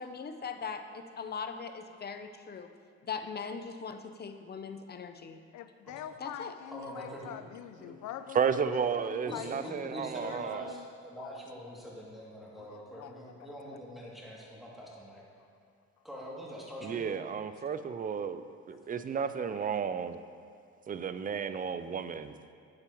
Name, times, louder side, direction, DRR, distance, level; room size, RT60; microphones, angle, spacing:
voice 1, 0.0-2.7 3.0-5.4 6.2-6.5, left 5 dB, 35° left, 8 dB, 0.7 m, -40 dB
voice 2, 5.5-10.9 11.2-11.3 12.6-13.8 17.6-18.1 19.4-19.5, left 10 dB, 75° left, 11 dB, 0.5 m, -46 dB
voice 3, 6.7-7.3 7.8-7.9 9.2-15.2 16.0-17.1, equal, ahead, -6 dB, 2.5 m, -44 dB
voice 4, 8.3-10.7 16.8-20.2 20.9-22.3, right 6 dB, 30° right, 11 dB, 0.4 m, -33 dB
11.5 x 8.4 x 3.0 m, 2.3 s
cardioid pair, 90°, 30 cm